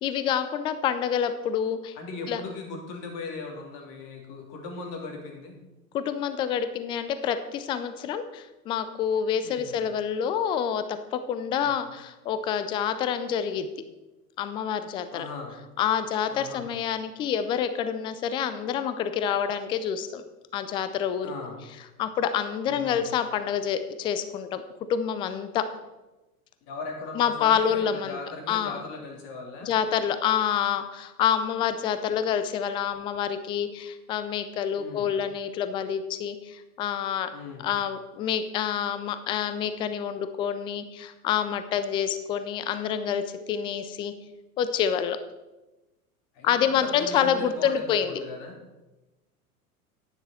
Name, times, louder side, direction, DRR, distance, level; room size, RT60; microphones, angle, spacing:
voice 1, 0.0-1.9 2.3-2.4 5.9-13.7 14.4-15.3 15.8-20.2 20.5-21.3 22.0-24.6 24.9-25.7 27.1-28.2 28.5-28.8 29.6-37.3 37.6-44.1 44.6-45.2 46.4-48.1, left 8 dB, 15° left, 11 dB, 0.3 m, -27 dB
voice 2, 2.0-5.6 9.4-9.8 11.6-11.8 15.1-15.6 16.3-16.7 21.2-21.6 22.7-23.0 26.7-29.7 34.7-35.1 37.3-37.7 46.3-48.6, left 3 dB, 50° left, 1 dB, 3.1 m, -39 dB
10.5 x 9.6 x 4.2 m, 1.1 s
figure-of-eight pair, 90°, 45 cm